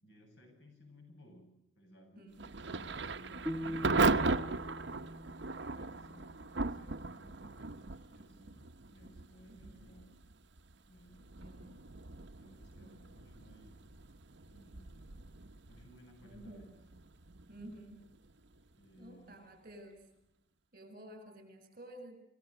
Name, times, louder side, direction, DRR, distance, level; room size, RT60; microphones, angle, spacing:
voice 1, 0.0-4.4 4.8-10.1 10.9-11.9 12.4-13.8 14.4-15.1 15.7-16.8 17.5-17.8 18.5-19.4, equal, 80° left, 3 dB, 7.8 m, -60 dB
voice 2, 2.2-2.6 9.5-9.8 11.4-11.7 16.2-16.7 17.5-18.0 19.0-20.0 20.7-22.2, right 1 dB, 50° right, 9 dB, 7.1 m, -52 dB
Thunder / Rain, 2.4-19.1, right 3 dB, 70° right, 1.0 m, -38 dB
sound 1, 3.5-6.6, equal, 10° right, 1.3 m, -43 dB
27.5 x 18.5 x 7.8 m, 0.83 s
head